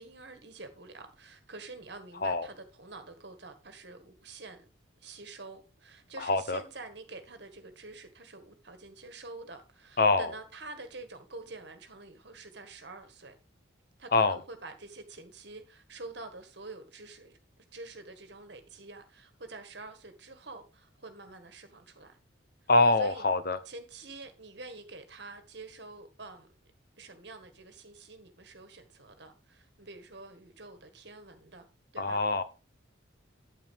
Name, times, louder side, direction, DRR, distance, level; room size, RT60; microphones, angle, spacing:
voice 1, 0.0-4.7 5.0-13.4 14.0-17.4 17.7-22.2 23.0-23.3 23.7-26.5 27.0-31.7 31.9-32.2, right 3 dB, 55° right, 1.7 m, -47 dB
voice 2, 6.2-6.6 10.0-10.3 14.1-14.4 22.7-23.6 32.0-32.4, left 3 dB, 50° left, 0.7 m, -24 dB
8.9 x 8.7 x 3.5 m
head